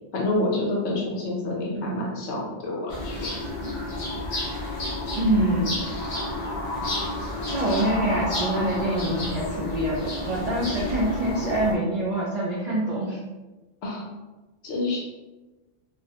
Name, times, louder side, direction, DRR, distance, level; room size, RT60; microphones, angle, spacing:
voice 1, 0.1-3.2 13.8-14.1 14.6-15.0, left 2 dB, 70° left, -2 dB, 0.9 m, -28 dB
voice 2, 1.7-2.1 5.1-5.8 7.5-13.2, right 1 dB, 65° right, -6 dB, 0.4 m, -25 dB
sound 1, 2.9-11.7, left 1 dB, 50° left, 0.6 m, -30 dB
2.4 x 2.0 x 2.7 m, 1.1 s
omnidirectional pair, 1.2 m